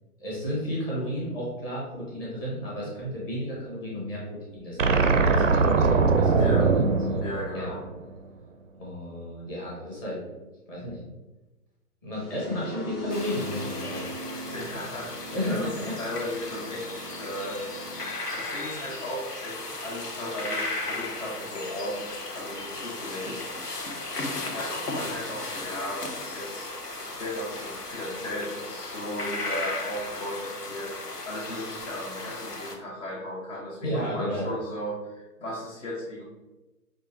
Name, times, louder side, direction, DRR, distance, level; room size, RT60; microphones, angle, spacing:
voice 1, 0.2-7.3 7.5-7.7 8.8-10.2 10.7-11.0 12.0-14.2 15.3-16.0 33.8-34.5, equal, 15° left, -6 dB, 0.8 m, -33 dB
sound 1, 4.8-8.1, right 4 dB, 55° right, 0.5 m, -22 dB
voice 2, 6.4-6.7 7.2-7.8 14.5-15.7 16.0-16.9 17.2-17.6 18.3-23.4 24.5-36.2, left 1 dB, 55° left, -5 dB, 1.1 m, -36 dB
sound 2, 12.1-18.1, equal, 70° left, 1.4 m, -40 dB
sound 3, 13.1-32.8, left 2 dB, 90° left, 0.8 m, -36 dB
5.3 x 2.6 x 3.1 m, 1.1 s
figure-of-eight pair, 130°, 46 cm